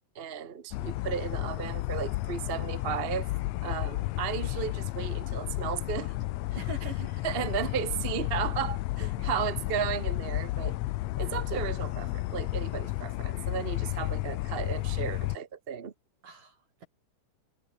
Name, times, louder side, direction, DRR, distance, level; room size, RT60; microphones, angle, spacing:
voice 1, 0.1-3.3 3.6-6.1 7.2-10.8 11.2-15.9, right 8 dB, 65° right, 0.5 m, -34 dB
sound 1, 0.7-15.4, left 18 dB, 85° left, 1.5 m, -32 dB
voice 2, 6.6-7.7 9.2-9.3 10.7-10.8 16.2-16.9, right 4 dB, 85° right, 8.4 m, -44 dB
omnidirectional pair, 3.7 m